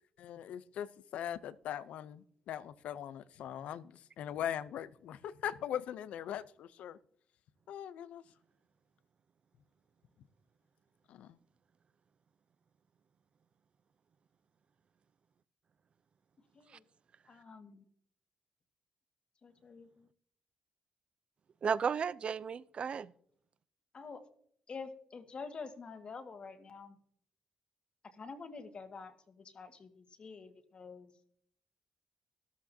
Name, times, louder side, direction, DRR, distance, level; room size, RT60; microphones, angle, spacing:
voice 1, 0.2-7.0 7.7-8.2 11.1-11.4, left 10 dB, 80° left, 0.6 m, -41 dB
voice 2, 17.3-17.9 19.4-20.1 23.9-24.2 24.7-27.0 28.0-31.1, left 4 dB, 50° left, 1.9 m, -48 dB
voice 3, 21.6-23.1, right 6 dB, 55° right, 0.5 m, -33 dB
13.5 x 13.0 x 2.8 m
supercardioid pair, 55°, 2 cm